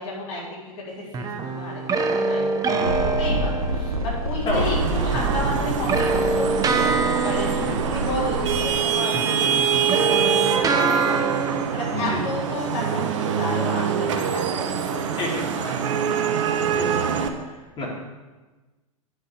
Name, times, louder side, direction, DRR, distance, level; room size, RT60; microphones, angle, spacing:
voice 1, 0.0-1.8 2.2-7.5 7.8-11.4 11.7-16.0, left 1 dB, 50° left, -5 dB, 4.0 m, -32 dB
sound 1, 1.1-4.2 5.1-8.8 9.1-11.7, right 3 dB, 20° right, 0.8 m, -25 dB
sound 2, 2.8-8.7, right 2 dB, 90° right, 1.0 m, -28 dB
voice 2, 4.4-4.8 7.6-7.8 11.9-12.2 15.2-15.5 16.6-17.0 17.8-17.9, left 1 dB, 30° left, -4 dB, 3.4 m, -28 dB
Vehicle horn car horn honking / Traffic noise roadway noise, 4.5-17.3, right 8 dB, 60° right, 1.0 m, -25 dB
9.8 x 6.2 x 6.5 m, 1.2 s
figure-of-eight pair, 95°, 18 cm